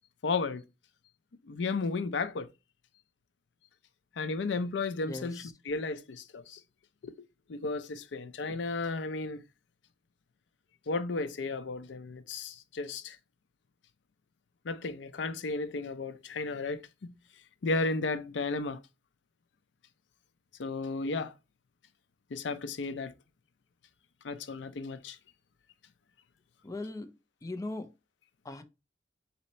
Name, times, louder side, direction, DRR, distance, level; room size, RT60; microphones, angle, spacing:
voice 1, 0.2-0.6 1.5-2.5 4.2-6.6 7.0-7.1 7.5-9.4 10.9-13.2 14.6-17.1 17.6-18.8 20.6-21.3 22.3-23.1 24.2-25.2, left 3 dB, 90° left, 0.5 m, -34 dB
voice 2, 5.0-5.5 26.6-27.1 27.4-27.9 28.4-28.6, left 2 dB, 20° left, 0.5 m, -39 dB
4.1 x 2.8 x 4.2 m
head